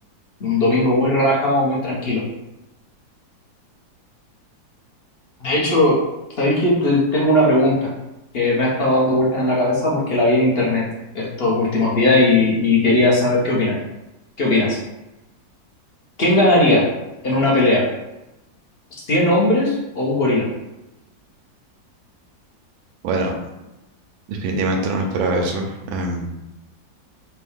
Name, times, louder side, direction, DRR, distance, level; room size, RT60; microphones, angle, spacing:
voice 1, 0.4-2.2 5.4-6.0 6.4-7.9 8.3-10.8 11.1-13.8 14.4-14.8 16.2-16.9 17.2-17.9 19.1-20.5, left 1 dB, 50° left, -5 dB, 0.7 m, -18 dB
voice 2, 23.0-23.4 24.3-26.3, right 2 dB, 90° right, 2 dB, 1.4 m, -23 dB
4.5 x 2.2 x 3.5 m, 0.97 s
omnidirectional pair, 2.1 m